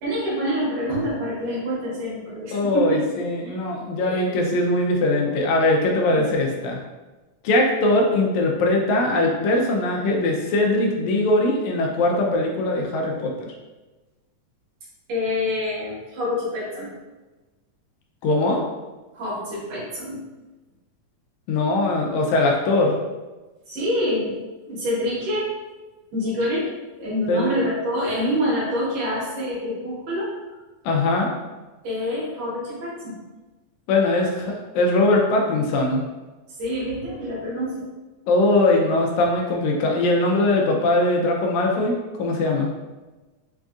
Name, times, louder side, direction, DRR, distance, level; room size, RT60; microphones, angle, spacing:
voice 1, 0.0-3.0 3.4-3.6 4.0-4.4 6.1-6.3 15.1-16.9 19.1-20.2 23.7-24.3 24.7-25.5 26.1-26.7 27.0-30.3 31.8-33.2 36.6-37.8, equal, 65° right, -7 dB, 2.2 m, -26 dB
voice 2, 2.5-6.8 7.4-13.5 18.2-18.6 21.5-23.0 27.3-27.6 30.9-31.3 33.9-36.0 38.3-42.7, left 2 dB, 80° left, 0 dB, 1.8 m, -21 dB
5.2 x 2.4 x 2.4 m, 1.2 s
omnidirectional pair, 3.5 m